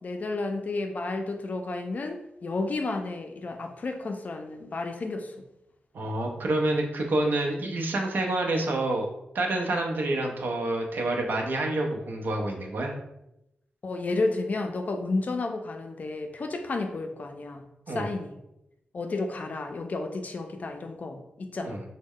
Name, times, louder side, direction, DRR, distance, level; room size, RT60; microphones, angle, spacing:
voice 1, 0.0-5.3 13.8-18.3 18.9-21.8, left 3 dB, 50° left, 4 dB, 0.4 m, -32 dB
voice 2, 5.9-9.1 9.3-12.9 17.9-18.1 21.6-21.8, right 2 dB, 75° right, 1 dB, 0.6 m, -28 dB
3.0 x 2.1 x 3.6 m, 0.85 s
wide cardioid pair, 90°, 3 cm